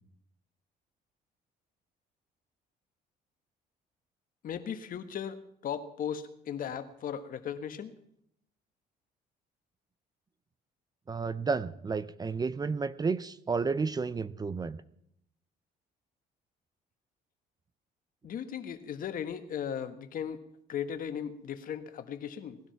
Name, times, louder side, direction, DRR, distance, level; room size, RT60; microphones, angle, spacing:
voice 1, 4.4-5.4 5.6-7.9 18.2-20.4 20.7-22.6, left 8 dB, 55° left, 10 dB, 1.5 m, -37 dB
voice 2, 11.1-14.8, right 4 dB, 25° right, 16 dB, 0.6 m, -31 dB
19.0 x 12.5 x 5.9 m, 0.73 s
cardioid pair, 110°, 17 cm